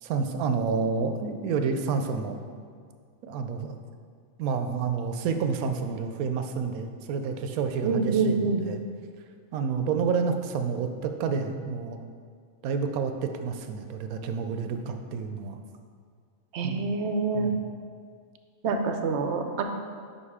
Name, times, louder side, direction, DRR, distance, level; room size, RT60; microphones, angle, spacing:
voice 1, 0.0-2.4 3.2-3.7 4.4-8.8 9.5-12.0 12.6-15.6 16.6-16.8 17.3-17.6, right 5 dB, 85° right, 7 dB, 1.0 m, -29 dB
voice 2, 7.8-8.6 16.5-17.5 18.6-19.6, right 4 dB, 65° right, 5 dB, 0.8 m, -26 dB
5.4 x 5.3 x 4.8 m, 2.1 s
omnidirectional pair, 1.5 m